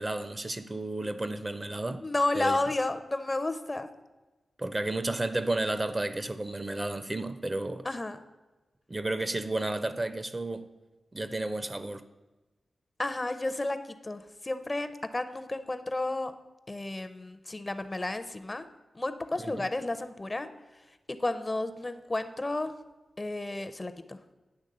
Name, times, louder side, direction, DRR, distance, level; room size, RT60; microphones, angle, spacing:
voice 1, 0.0-2.0 2.3-2.6 4.6-7.9 8.9-10.7 11.1-12.0 19.4-19.6, right 2 dB, 25° right, 11 dB, 0.4 m, -32 dB
voice 2, 2.0-3.9 7.8-8.2 13.0-16.3 16.7-18.7 18.9-20.5 21.1-22.7 23.2-24.2, left 2 dB, 25° left, 10 dB, 0.5 m, -32 dB
9.7 x 3.5 x 6.6 m, 1.1 s
wide cardioid pair, 75°, 0 cm